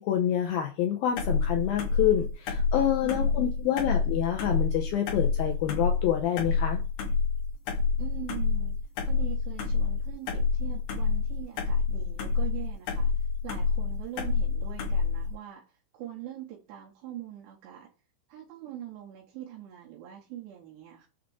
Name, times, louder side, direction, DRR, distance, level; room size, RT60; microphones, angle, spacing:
voice 1, 0.0-6.8, left 10 dB, 85° left, 2.0 m, -27 dB
sound 1, 1.2-15.3, left 4 dB, 70° left, 3.3 m, -28 dB
voice 2, 3.0-3.5 8.0-17.9 18.3-21.1, right 12 dB, 80° right, 3.1 m, -43 dB
7.9 x 3.6 x 4.9 m
omnidirectional pair, 5.1 m